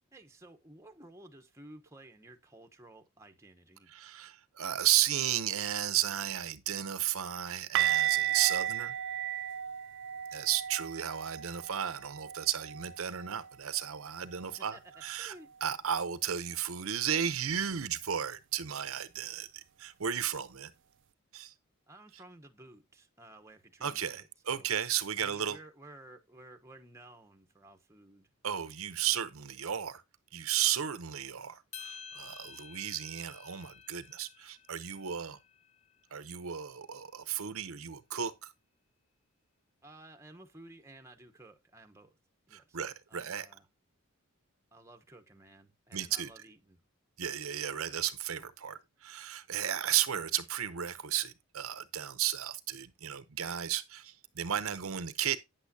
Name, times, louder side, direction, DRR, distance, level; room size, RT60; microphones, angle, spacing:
voice 1, 0.1-3.9 14.6-14.8 15.2-15.5 21.9-24.7 25.2-28.3 39.8-42.2 42.5-42.8 43.1-43.7 44.7-46.8, right 2 dB, 15° right, 0.9 m, -54 dB
voice 2, 3.9-8.9 10.3-15.4 15.6-20.7 21.3-21.5 23.8-25.6 28.4-30.0 30.3-35.4 36.1-38.5 42.5-43.5 45.9-46.3 47.2-55.4, right 10 dB, 75° right, 0.7 m, -34 dB
sound 1, 7.8-13.5 13.8-14.0 14.4-14.5 17.8-17.9, right 12 dB, 55° right, 0.4 m, -34 dB
sound 2, 31.7-36.1, left 6 dB, 30° left, 0.4 m, -51 dB
9.1 x 8.2 x 2.7 m
head